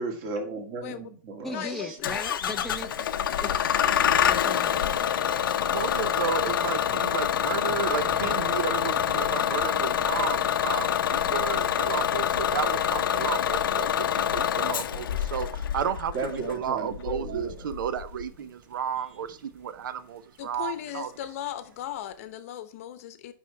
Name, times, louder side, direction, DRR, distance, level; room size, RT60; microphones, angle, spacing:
voice 1, 0.0-2.0 16.1-17.5, right 3 dB, 35° right, 1.9 m, -35 dB
voice 2, 0.8-1.1 1.5-2.2 2.5-2.9 20.4-23.3, left 11 dB, 40° left, 0.9 m, -37 dB
voice 3, 1.4-3.1 3.4-3.5 4.3-4.9, left 3 dB, 5° left, 0.4 m, -37 dB
Bus / Engine starting, 2.0-18.2, left 9 dB, 80° left, 0.7 m, -26 dB
voice 4, 5.7-21.1, right 8 dB, 70° right, 0.7 m, -33 dB
sound 1, 5.9-22.3, right 3 dB, 15° right, 1.3 m, -51 dB
6.1 x 5.6 x 4.5 m
hypercardioid pair, 170°, 11 cm